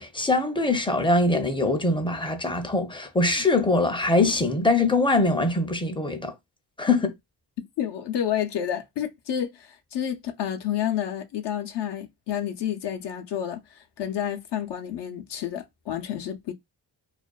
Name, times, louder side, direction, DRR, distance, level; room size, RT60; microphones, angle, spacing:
voice 1, 0.0-6.3 6.8-7.1, left 2 dB, 10° left, 0.5 m, -23 dB
voice 2, 7.8-16.5, left 10 dB, 70° left, 0.6 m, -30 dB
2.4 x 2.3 x 2.2 m
cardioid pair, 65°, 44 cm